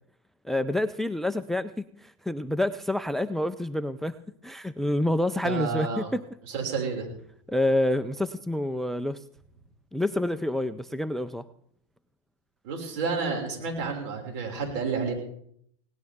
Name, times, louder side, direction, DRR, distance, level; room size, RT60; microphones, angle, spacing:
voice 1, 0.4-4.2 4.4-6.2 7.5-9.2 9.9-11.4, left 1 dB, ahead, 13 dB, 0.5 m, -28 dB
voice 2, 5.4-6.1 6.5-7.1 12.6-15.1, right 5 dB, 60° right, 1 dB, 6.0 m, -30 dB
19.0 x 18.0 x 3.7 m, 0.67 s
hypercardioid pair, 105°, 18 cm